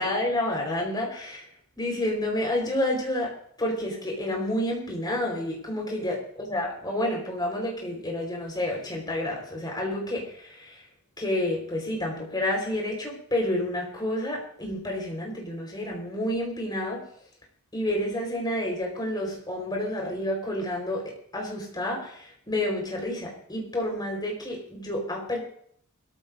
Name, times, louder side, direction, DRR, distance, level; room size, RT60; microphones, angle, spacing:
voice 1, 0.0-1.5 1.7-3.3 3.6-10.8 11.2-17.0 17.7-25.4, left 1 dB, 20° left, 0 dB, 4.3 m, -29 dB
23.0 x 14.0 x 2.6 m, 0.65 s
head